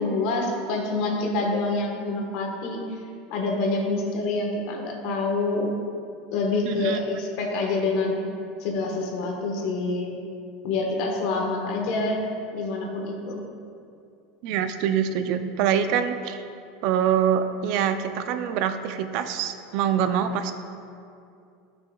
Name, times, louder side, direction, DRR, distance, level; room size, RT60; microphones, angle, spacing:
voice 1, 0.0-3.0 3.3-5.7 6.3-8.2 8.6-10.1 10.6-12.2 12.5-13.4, left 3 dB, 65° left, 1 dB, 1.3 m, -26 dB
voice 2, 6.6-7.0 14.4-16.4 16.8-20.5, right 8 dB, 60° right, 9 dB, 0.4 m, -25 dB
11.5 x 5.9 x 2.3 m, 2.5 s
supercardioid pair, 115°, 0 cm